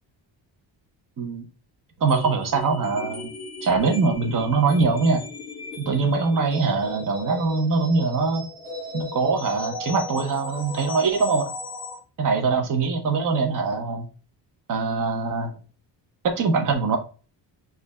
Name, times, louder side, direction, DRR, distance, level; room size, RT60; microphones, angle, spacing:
voice 1, 2.0-3.3 3.6-5.2 5.8-8.4 8.9-11.5 12.2-14.1 14.7-15.5 16.4-17.0, right 4 dB, 45° right, 4 dB, 0.9 m, -23 dB
sound 1, 2.1-12.0, left 3 dB, 25° left, 1.5 m, -37 dB
5.1 x 2.6 x 2.2 m, 0.35 s
cardioid pair, 120°, 46 cm